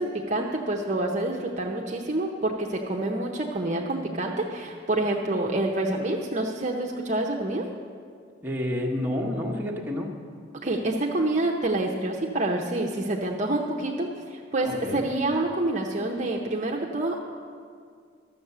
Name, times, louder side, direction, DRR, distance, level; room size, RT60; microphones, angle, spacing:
voice 1, 0.0-7.7 10.6-17.2, right 2 dB, 40° right, 0 dB, 0.7 m, -27 dB
voice 2, 8.4-10.1 14.6-15.0, left 1 dB, 10° right, -2 dB, 1.2 m, -29 dB
12.5 x 7.2 x 6.8 m, 2.1 s
head